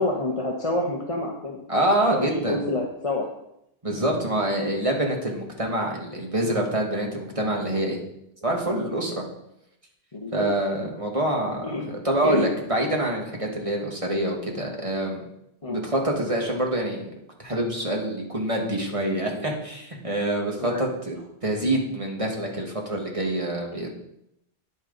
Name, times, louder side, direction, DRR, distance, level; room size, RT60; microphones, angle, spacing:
voice 1, 0.0-1.6 2.1-3.4 10.1-10.4 11.3-11.8 12.2-12.4 15.6-15.8 20.6-20.8, left 2 dB, 30° left, -1 dB, 1.1 m, -28 dB
voice 2, 1.7-2.6 3.8-8.0 8.4-9.2 10.3-15.2 15.7-17.1 17.4-21.1 21.4-23.9, right 1 dB, 30° right, 0 dB, 1.7 m, -26 dB
10.0 x 8.6 x 4.0 m, 0.80 s
omnidirectional pair, 1.1 m